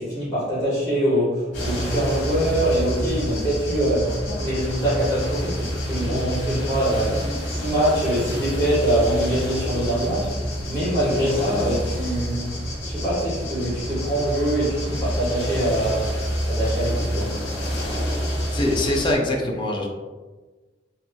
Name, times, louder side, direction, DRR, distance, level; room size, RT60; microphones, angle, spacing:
voice 1, 0.0-17.4, right 1 dB, 5° left, -15 dB, 1.4 m, -24 dB
sound 1, 1.5-19.1, equal, 65° left, 1.2 m, -28 dB
voice 2, 18.5-19.9, left 1 dB, 25° left, 0 dB, 0.5 m, -23 dB
4.0 x 2.9 x 2.3 m, 1.3 s
head